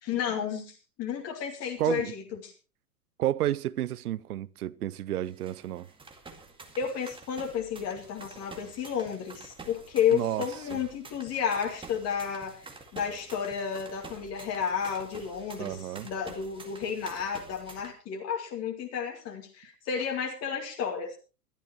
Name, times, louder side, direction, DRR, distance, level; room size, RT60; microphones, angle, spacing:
voice 1, 0.0-2.5 6.8-21.2, left 7 dB, 30° left, 2.5 m, -32 dB
voice 2, 1.8-2.1 3.2-5.9 10.1-10.5 10.7-10.8 15.6-16.1, right 13 dB, 70° right, 0.7 m, -31 dB
sound 1, 5.2-17.9, right 3 dB, 10° right, 2.1 m, -48 dB
21.5 x 12.0 x 3.0 m
figure-of-eight pair, 100°, 47 cm